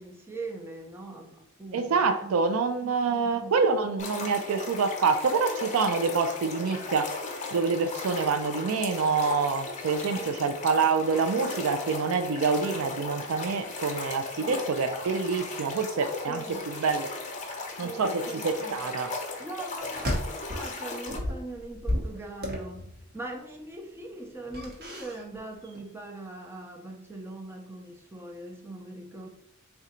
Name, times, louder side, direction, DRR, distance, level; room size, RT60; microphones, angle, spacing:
voice 1, 0.0-2.4 2.8-3.5 10.2-10.5 14.4-14.7 16.3-16.6 17.8-18.8 19.4-29.3, right 2 dB, 10° right, 0.5 m, -41 dB
voice 2, 1.7-7.1 7.5-17.1 17.8-19.1, right 4 dB, 70° right, 0.4 m, -26 dB
sound 1, 4.0-21.2, left 3 dB, 35° left, 0.7 m, -37 dB
sound 2, 19.8-20.7 21.1-23.2 24.4-25.4 25.6-25.8, left 1 dB, 45° right, 1.0 m, -33 dB
3.7 x 2.3 x 4.2 m
head